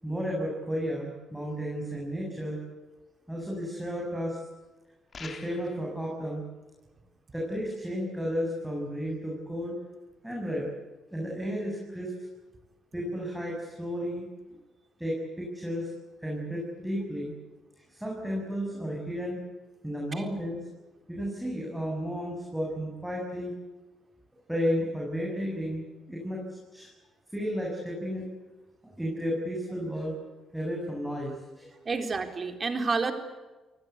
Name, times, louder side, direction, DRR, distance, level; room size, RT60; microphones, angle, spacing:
voice 1, 0.0-2.6 3.3-4.4 5.2-6.4 7.3-9.7 10.2-10.7 11.1-12.3 12.9-14.2 15.0-15.9 16.2-17.3 17.9-19.4 19.8-20.6 21.1-23.6 24.5-26.4 26.7-26.9 27.3-28.3 29.0-30.1 30.5-31.7, equal, 5° right, -2 dB, 7.4 m, -33 dB
sound 1, 5.1-5.9, left 5 dB, 45° left, 3.5 m, -44 dB
voice 2, 31.9-33.1, right 4 dB, 35° right, 6 dB, 3.9 m, -29 dB
29.5 x 19.5 x 8.3 m, 1.2 s
cardioid pair, 90°, 0 cm